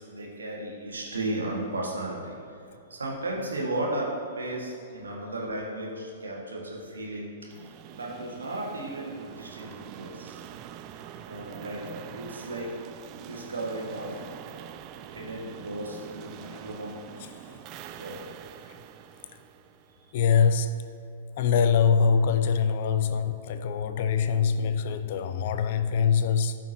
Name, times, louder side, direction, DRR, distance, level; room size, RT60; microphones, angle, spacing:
voice 1, 0.0-2.6 2.9-7.3 7.9-10.4 11.3-12.7 13.2-14.2 15.1-17.0 18.0-18.2, right 1 dB, 75° right, 1.9 m, -35 dB
sound 1, 7.5-20.4, right 10 dB, 35° right, 0.4 m, -45 dB
voice 2, 20.1-20.8 21.4-26.6, left 6 dB, 50° left, 0.5 m, -24 dB
15.0 x 5.9 x 2.9 m
figure-of-eight pair, 110°, 0 cm